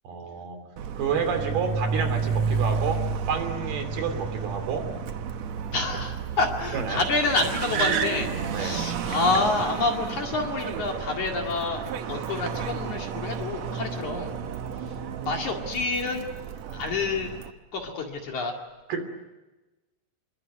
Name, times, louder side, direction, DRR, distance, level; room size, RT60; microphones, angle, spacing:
voice 1, 0.0-0.6 1.0-4.9 6.7-7.0 8.5-8.9 18.9-19.1, right 6 dB, 60° right, 7 dB, 4.6 m, -30 dB
Car, 0.8-17.5, right 6 dB, 85° right, 1.5 m, -31 dB
voice 2, 5.7-14.3 14.8-14.9 15.3-16.3 16.7-17.3 17.7-18.5, left 3 dB, 50° left, 2 dB, 3.2 m, -28 dB
27.0 x 22.5 x 9.2 m, 1.1 s
omnidirectional pair, 5.1 m